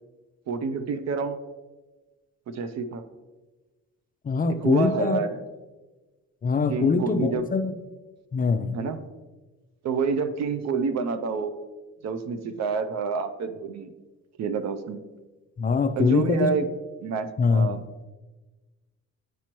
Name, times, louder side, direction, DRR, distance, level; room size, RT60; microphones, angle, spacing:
voice 1, 0.5-1.4 2.5-3.0 4.6-5.4 6.7-7.5 8.7-9.0 9.8-11.5 12.0-13.9 14.4-15.0 16.0-16.6 17.0-17.8, right 5 dB, 60° right, 11 dB, 0.6 m, -28 dB
voice 2, 4.2-5.2 6.4-7.7 8.3-8.8 15.6-16.5 17.4-17.8, left 4 dB, 30° left, 9 dB, 0.4 m, -23 dB
9.3 x 4.4 x 3.0 m, 1.2 s
cardioid pair, 90°, 30 cm